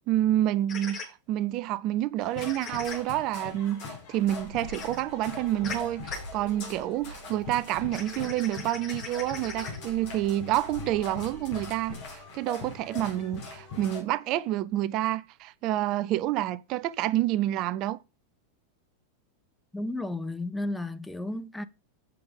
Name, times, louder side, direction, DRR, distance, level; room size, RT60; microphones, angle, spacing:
voice 1, 0.0-18.0, right 14 dB, 40° right, 0.5 m, -28 dB
sound 1, 0.7-1.1 2.4-3.0 4.7-5.0 5.6-5.8 6.1-6.2 7.9-9.8, left 5 dB, 30° left, 4.0 m, -39 dB
sound 2, 2.2-14.0, left 3 dB, 50° left, 4.4 m, -41 dB
voice 2, 19.7-21.6, left 2 dB, 5° left, 0.7 m, -33 dB
8.5 x 6.9 x 5.3 m
figure-of-eight pair, 90°, 0 cm